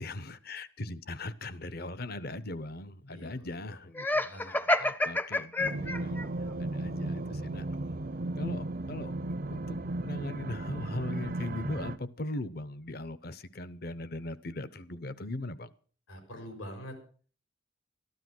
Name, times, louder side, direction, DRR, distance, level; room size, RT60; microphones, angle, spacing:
voice 1, 0.0-6.3 6.6-7.7 8.4-15.7, left 1 dB, 50° left, 0.8 m, -39 dB
voice 2, 3.1-3.8 4.2-4.7 16.1-17.0, equal, 85° left, 4.7 m, -45 dB
Laughter, 3.9-6.3, left 1 dB, 10° left, 0.6 m, -29 dB
sound 1, 5.6-12.0, right 2 dB, 45° right, 0.6 m, -35 dB
13.5 x 12.0 x 6.2 m
head